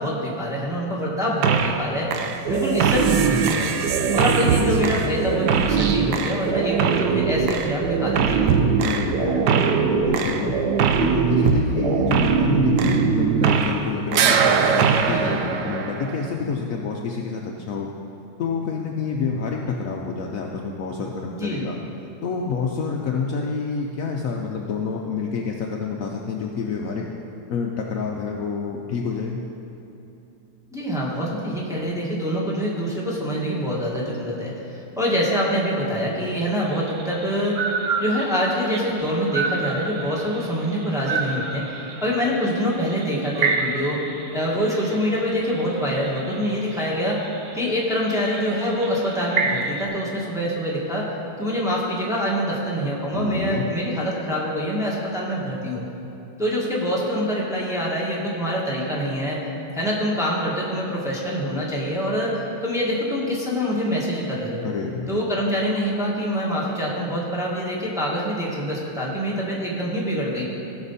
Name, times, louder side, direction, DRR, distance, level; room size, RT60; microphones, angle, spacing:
voice 1, 0.0-2.1 2.5-3.6 4.1-8.5 15.0-15.4 21.3-21.7 30.7-37.6 38.0-41.7 42.0-44.0 44.3-47.2 47.5-51.1 51.4-55.8 56.4-59.4 59.7-64.6 65.1-70.5, equal, ahead, -5 dB, 1.5 m, -25 dB
sound 1, 1.4-1.8 2.1-13.9 14.1-16.3, right 6 dB, 85° right, 1.2 m, -21 dB
voice 2, 8.8-10.6 11.0-17.9 18.4-21.8 22.2-27.1 27.5-29.4 53.1-53.7 64.6-65.1, left 5 dB, 65° left, 0 dB, 1.0 m, -28 dB
sound 2, 36.6-49.8, right 4 dB, 60° right, 1.0 m, -31 dB
16.5 x 6.0 x 4.1 m, 2.9 s
omnidirectional pair, 1.7 m